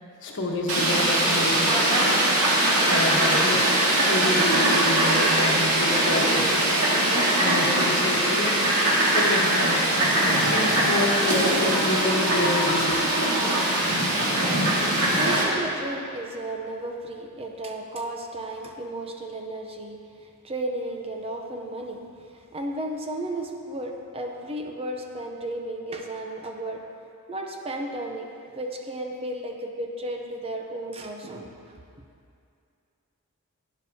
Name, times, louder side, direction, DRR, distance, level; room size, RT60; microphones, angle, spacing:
voice 1, 0.2-1.8 2.9-6.8 7.4-8.6 9.1-9.9 10.4-13.0, left 2 dB, 55° left, -1 dB, 1.2 m, -28 dB
Fowl, 0.7-15.4, right 1 dB, 80° right, 2.1 m, -21 dB
voice 2, 15.1-20.0 20.4-26.8 27.3-31.7, right 1 dB, 25° right, 2 dB, 0.6 m, -34 dB
11.5 x 10.0 x 2.8 m, 2.5 s
head